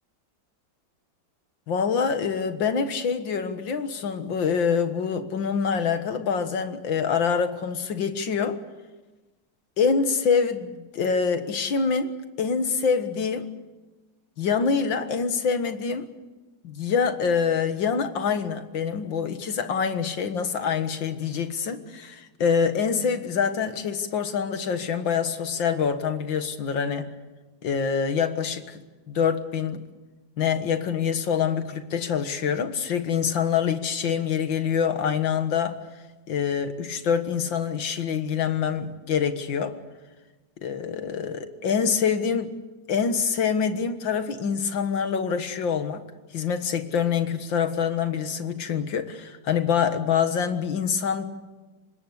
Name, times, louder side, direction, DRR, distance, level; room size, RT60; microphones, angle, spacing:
voice 1, 1.7-8.6 9.8-12.1 12.4-13.5 14.4-16.1 16.6-27.1 27.6-28.8 29.1-29.8 30.4-35.8 36.3-39.8 40.6-42.5 42.9-46.0 46.3-51.2, left 6 dB, 85° left, 9 dB, 2.3 m, -25 dB
25.0 x 20.0 x 8.2 m, 1.2 s
omnidirectional pair, 2.0 m